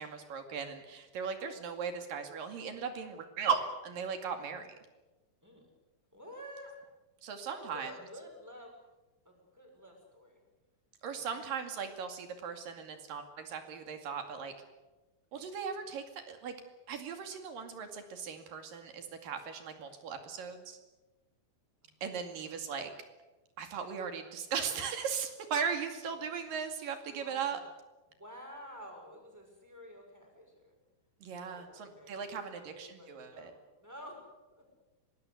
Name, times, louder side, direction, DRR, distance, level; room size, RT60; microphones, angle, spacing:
voice 1, 0.0-4.8 7.2-7.9 11.0-14.5 15.3-16.6 16.9-20.8 22.0-22.9 23.6-27.6 31.2-33.5, right 6 dB, 70° right, 6 dB, 4.0 m, -38 dB
voice 2, 6.1-6.8 7.5-8.7 9.2-10.4 11.1-11.4 15.3-15.7 21.8-22.0 22.3-22.6 27.2-27.6 28.2-30.7 31.3-34.3 34.5-34.7, equal, 5° right, 1 dB, 6.2 m, -51 dB
24.0 x 19.5 x 8.3 m, 1.1 s
omnidirectional pair, 4.1 m